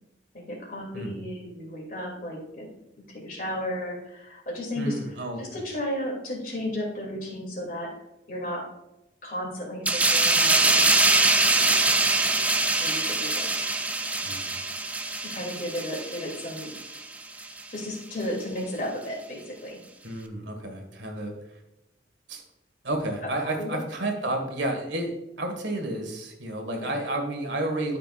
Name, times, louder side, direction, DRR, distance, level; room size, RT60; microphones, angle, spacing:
voice 1, 0.3-5.0 5.4-7.9 8.3-8.7 9.2-10.9 11.6-11.9 12.8-13.5 15.2-16.7 17.7-19.8 23.2-23.3 23.6-23.8 26.8-26.9, left 1 dB, 50° left, -2 dB, 2.8 m, -34 dB
voice 2, 4.7-5.6 14.2-14.6 20.0-21.6 22.3-22.4 22.8-28.0, right 1 dB, 85° right, 4 dB, 1.7 m, -31 dB
sound 1, 9.9-17.0 17.4-17.6, right 2 dB, 10° right, 0.3 m, -23 dB
12.5 x 5.8 x 2.5 m, 0.90 s
head